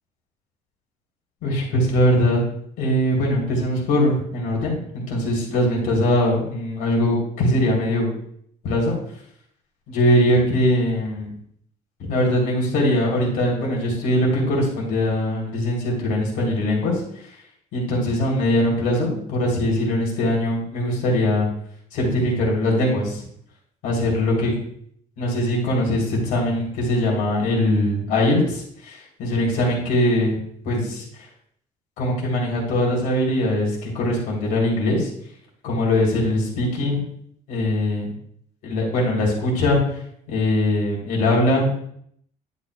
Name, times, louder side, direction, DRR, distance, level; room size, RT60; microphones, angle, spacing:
voice 1, 1.4-2.4 2.8-8.1 8.6-8.9 9.9-11.3 12.1-17.4 17.7-21.5 21.9-23.2 23.8-24.6 25.2-31.3 32.0-35.1 35.6-37.0 37.5-38.1 38.6-40.0 40.3-41.7, left 1 dB, 75° left, -2 dB, 3.4 m, -21 dB
11.0 x 8.4 x 2.3 m, 0.67 s
cardioid pair, 175°, 14 cm